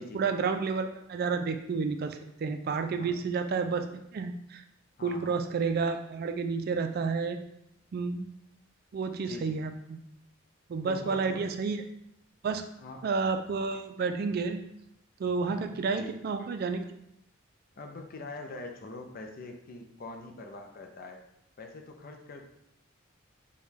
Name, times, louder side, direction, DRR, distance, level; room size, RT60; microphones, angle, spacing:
voice 1, 0.0-3.9 4.1-4.6 5.0-7.4 7.9-8.3 8.9-10.0 10.7-11.8 12.4-12.7 13.0-14.6 15.2-16.8, right 4 dB, 50° right, 7 dB, 0.3 m, -30 dB
voice 2, 5.0-5.4 9.2-9.6 10.8-11.6 12.8-13.1 15.5-16.2 17.8-21.2 21.6-22.4, left 2 dB, 45° left, 4 dB, 0.5 m, -43 dB
5.1 x 2.2 x 3.3 m, 0.77 s
head